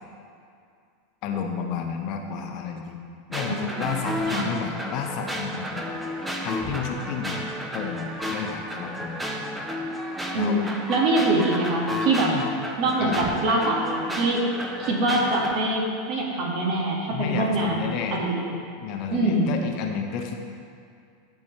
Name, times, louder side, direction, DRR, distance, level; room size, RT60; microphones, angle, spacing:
voice 1, 1.2-3.0 3.3-5.9 6.4-9.2 10.3-10.6 12.2-12.5 13.0-13.3 17.1-18.2 18.8-20.3, left 6 dB, 55° left, 3 dB, 0.8 m, -31 dB
sound 1, 3.3-15.5, equal, 10° right, 1.0 m, -32 dB
voice 2, 3.5-3.9 4.3-4.5 10.3-10.6 10.9-12.3 12.8-14.5 14.8-17.8 18.1-18.4 19.1-19.5, right 2 dB, 55° right, -2 dB, 1.8 m, -24 dB
13.5 x 4.6 x 3.2 m, 2.4 s
hypercardioid pair, 90°, 0 cm